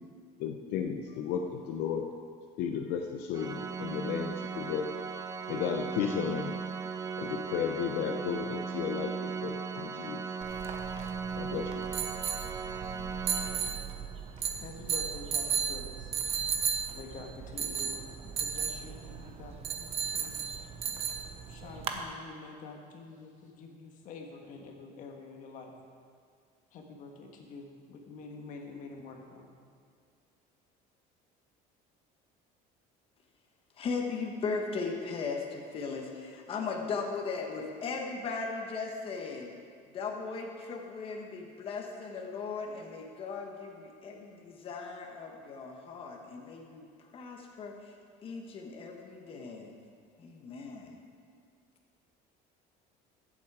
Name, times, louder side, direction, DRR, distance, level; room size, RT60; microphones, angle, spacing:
voice 1, 0.4-2.1 2.6-4.9 5.5-6.6 7.2-10.2 11.4-11.8, left 7 dB, 75° left, 3 dB, 0.8 m, -34 dB
Organ, 3.3-14.2, right 5 dB, 20° right, 0.4 m, -37 dB
sound 1, 10.4-22.0, right 7 dB, 35° right, 0.9 m, -35 dB
voice 2, 14.5-16.1 16.9-18.0 18.4-20.8 21.1-25.8 26.7-29.6, left 4 dB, 50° left, 2 dB, 1.5 m, -47 dB
voice 3, 33.8-39.5 39.9-47.9 48.2-49.7 50.2-51.0, left 4 dB, 35° left, 1 dB, 1.3 m, -37 dB
14.5 x 7.5 x 4.9 m, 2.2 s
cardioid pair, 160°, 17 cm